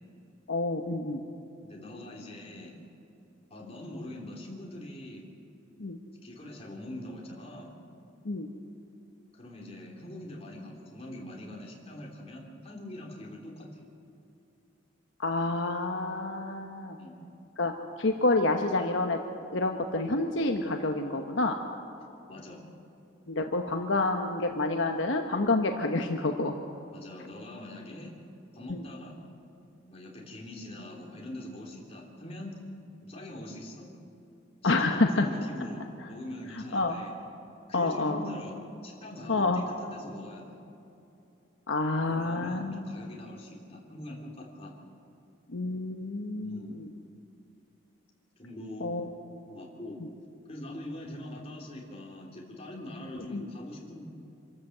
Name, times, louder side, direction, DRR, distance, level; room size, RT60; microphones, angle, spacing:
voice 1, 0.5-1.2 5.8-6.0 8.2-8.5 15.2-17.0 17.6-17.7 18.0-19.2 19.5-21.5 23.3-26.5 28.7-28.8 34.6-35.3 36.7-37.0 37.7-38.2 39.3-39.6 41.7-42.8 45.5-46.9 48.8-49.0 53.3-53.5, left 2 dB, 75° left, 4 dB, 1.1 m, -28 dB
voice 2, 1.6-2.8 3.5-5.3 6.2-7.7 9.3-13.8 17.0-17.2 22.3-22.6 26.9-28.2 28.5-29.2 29.9-32.6 33.0-33.9 34.6-37.1 37.7-40.6 42.0-44.7 46.4-46.8 48.4-48.9 49.4-50.0 50.5-54.0, left 1 dB, 30° left, -1 dB, 3.3 m, -43 dB
26.0 x 13.0 x 7.9 m, 2.7 s
head